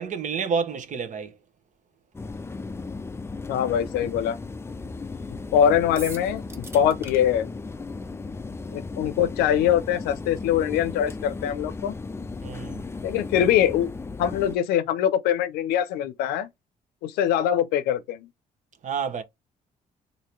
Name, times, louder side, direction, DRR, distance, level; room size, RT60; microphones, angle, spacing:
voice 1, 0.0-1.3 12.4-12.8 18.8-19.2, right 6 dB, 50° right, 0.9 m, -29 dB
sound 1, 2.1-14.6, left 3 dB, 15° left, 0.4 m, -36 dB
voice 2, 3.5-4.4 5.5-7.5 8.7-12.0 13.0-13.9 14.2-16.5 17.0-18.3, left 9 dB, 85° left, 0.6 m, -23 dB
sound 2, 5.9-7.2, right 2 dB, 15° right, 1.2 m, -40 dB
3.0 x 2.8 x 4.3 m
supercardioid pair, 70°, 16 cm